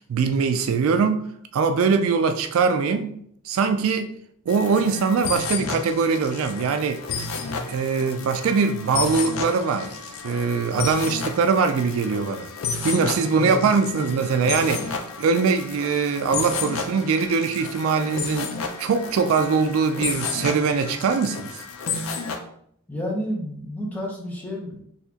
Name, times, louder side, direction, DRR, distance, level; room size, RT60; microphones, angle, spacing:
voice 1, 0.1-1.2 1.5-3.2 3.4-4.1 4.5-7.0 7.7-9.9 10.2-12.5 12.8-21.5, right 5 dB, 65° right, 0.3 m, -22 dB
sound 1, 4.5-22.4, left 5 dB, 65° left, 0.5 m, -32 dB
voice 2, 13.3-14.0 22.9-24.8, equal, 5° left, 0.8 m, -31 dB
4.1 x 2.8 x 2.8 m
head